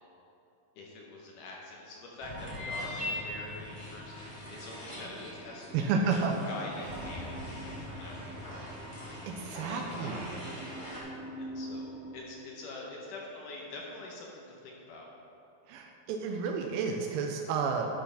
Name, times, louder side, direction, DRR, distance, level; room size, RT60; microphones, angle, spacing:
voice 1, 0.8-7.3 8.0-8.5 9.7-10.2 11.4-11.9 12.1-15.1, left 2 dB, 70° left, -2 dB, 2.2 m, -45 dB
sound 1, 2.2-12.2, equal, 50° right, 3.0 m, -44 dB
sound 2, 2.4-11.0, left 1 dB, 25° left, 0.7 m, -43 dB
voice 2, 5.7-6.3 9.3-10.4 15.7-17.9, right 5 dB, 80° right, 2 dB, 2.2 m, -31 dB
10.5 x 5.7 x 5.7 m, 2.8 s
omnidirectional pair, 4.5 m